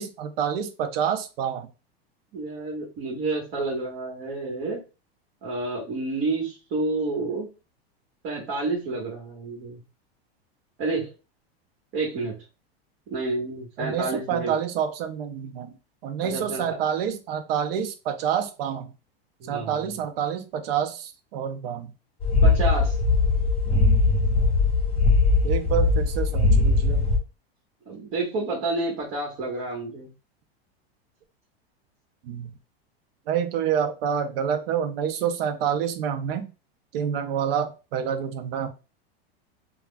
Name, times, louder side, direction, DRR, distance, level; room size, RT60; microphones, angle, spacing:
voice 1, 0.0-1.7 13.8-15.7 16.0-18.9 19.5-21.9 25.4-27.1 32.2-32.5 33.3-36.5 36.9-38.7, right 8 dB, 65° right, 8 dB, 0.7 m, -28 dB
voice 2, 2.3-4.8 5.4-7.5 8.2-9.8 10.8-11.1 11.9-12.3 13.1-14.6 16.2-16.7 19.4-19.9 22.4-23.0 27.9-30.1, right 3 dB, 50° right, -2 dB, 1.3 m, -29 dB
sound 1, 22.2-27.2, left 3 dB, 20° left, 1.0 m, -20 dB
3.3 x 2.2 x 2.2 m, 0.30 s
supercardioid pair, 120°, 31 cm